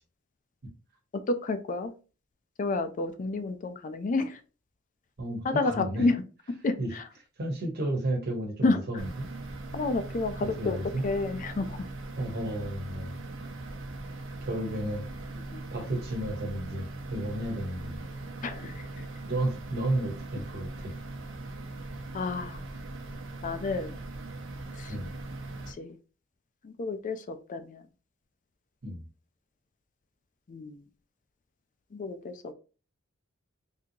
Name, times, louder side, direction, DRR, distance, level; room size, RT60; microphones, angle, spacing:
voice 1, 1.3-1.9 2.6-4.4 5.4-6.2 6.6-7.0 8.6-8.8 9.7-10.8 11.0-11.9 15.5-15.6 18.4-19.1 22.1-22.6 23.4-23.9 24.8-24.9 25.7-26.0 26.6-27.8 30.5-30.8 31.9-32.5, left 3 dB, 40° left, 9 dB, 0.4 m, -30 dB
voice 2, 5.2-6.1 6.8-6.9 7.4-9.3 10.4-11.0 12.2-13.2 14.4-15.1 15.7-18.0 19.3-20.9 24.9-25.1 28.8-29.0, right 1 dB, 50° right, 2 dB, 1.1 m, -32 dB
sound 1, 9.0-25.7, right 2 dB, 70° right, 0.7 m, -40 dB
3.6 x 2.7 x 2.7 m, 0.34 s
head